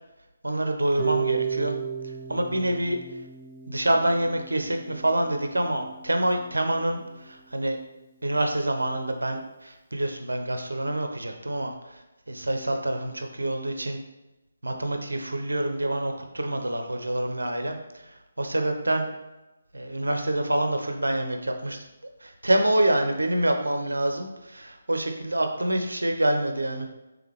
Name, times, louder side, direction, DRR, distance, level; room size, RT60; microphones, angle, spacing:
voice 1, 0.4-1.8 2.0-3.0 3.7-7.8 8.2-14.0 14.6-19.1 19.7-21.8 22.2-26.9, right 1 dB, 75° right, 5 dB, 0.6 m, -27 dB
Harp, 1.0-7.0, right 7 dB, ahead, 0.4 m, -34 dB
3.5 x 3.5 x 3.0 m, 1.0 s
figure-of-eight pair, 145°, 0 cm